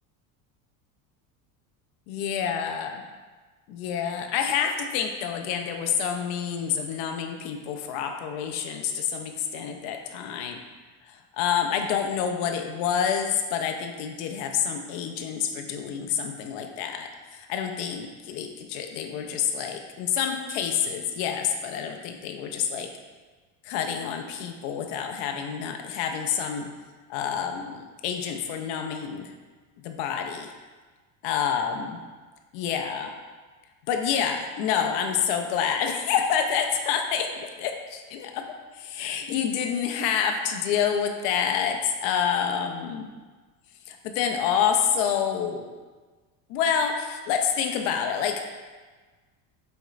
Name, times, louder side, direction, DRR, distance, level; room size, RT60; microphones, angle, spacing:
voice 1, 2.1-3.0 3.7-10.6 11.1-22.9 23.6-26.7 27.1-29.3 29.8-30.5 31.2-32.0 32.5-33.1 33.9-38.4 38.7-43.1 43.9-45.7 46.5-48.4, left 8 dB, 70° left, 4 dB, 0.5 m, -28 dB
4.2 x 2.9 x 2.4 m, 1.3 s
cardioid pair, 135°, 41 cm